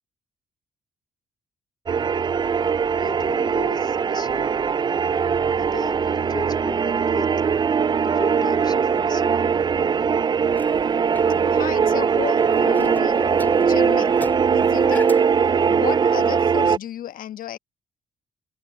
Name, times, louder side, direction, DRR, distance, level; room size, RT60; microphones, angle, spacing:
sound 1, 1.9-16.8, right 6 dB, 30° right, 0.4 m, -20 dB
voice 1, 3.0-4.6 5.6-7.3 8.0-9.3, left 3 dB, 25° left, 3.2 m, -36 dB
sound 2, 10.5-15.5, left 1 dB, 10° left, 4.1 m, -36 dB
voice 2, 11.5-13.2 13.6-14.1 14.5-15.0 15.7-17.6, left 11 dB, 60° left, 1.4 m, -33 dB
open air
hypercardioid pair, 45°, 16 cm